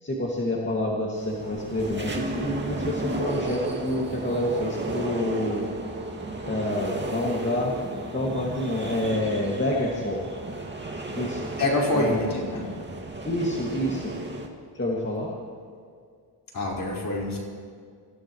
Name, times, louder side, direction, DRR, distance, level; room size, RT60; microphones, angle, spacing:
voice 1, 0.0-5.7 6.4-10.3 11.1-11.5 11.9-12.4 13.2-14.1 14.7-15.4, left 1 dB, 25° left, -3 dB, 2.2 m, -28 dB
sound 1, 1.2-14.5, right 2 dB, 25° right, 2.2 m, -34 dB
voice 2, 11.6-12.6 16.5-17.4, left 1 dB, 50° left, -4 dB, 5.0 m, -26 dB
26.5 x 15.5 x 3.2 m, 2.1 s
cardioid pair, 85°, 44 cm